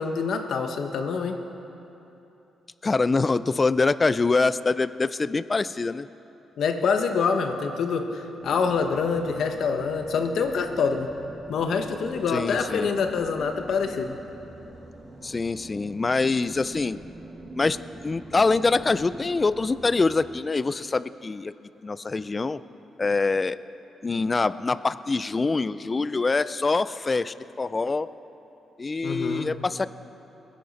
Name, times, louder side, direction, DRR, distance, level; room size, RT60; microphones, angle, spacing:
voice 1, 0.0-1.3 6.6-11.1 11.5-14.2 29.0-29.5, left 5 dB, 70° left, 6 dB, 1.0 m, -26 dB
voice 2, 2.8-6.1 12.3-12.9 15.2-17.0 17.5-17.8 18.0-21.5 21.8-22.6 23.0-23.6 24.0-28.1 28.8-29.9, left 3 dB, 25° left, 16 dB, 0.3 m, -24 dB
sound 1, 8.4-20.3, right 1 dB, 40° right, 2.6 m, -44 dB
21.0 x 10.0 x 4.1 m, 3.0 s
cardioid pair, 125°, 0 cm